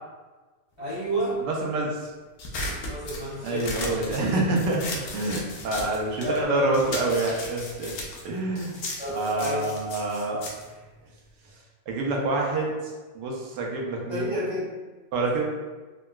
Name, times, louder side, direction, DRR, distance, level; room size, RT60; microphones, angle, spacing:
voice 1, 0.8-1.4 2.8-4.0 5.3-5.4 6.2-7.2 9.0-9.7 14.1-14.7, equal, 30° left, -12 dB, 0.5 m, -31 dB
voice 2, 1.4-2.0 3.4-7.9 8.2-8.8 9.1-10.4 11.9-12.7 13.1-14.3 15.1-15.4, right 2 dB, 85° right, -1 dB, 1.2 m, -27 dB
sound 1, 2.4-6.4 6.7-11.5, left 2 dB, 75° left, 1.1 m, -36 dB
3.7 x 2.2 x 2.2 m, 1.3 s
omnidirectional pair, 1.8 m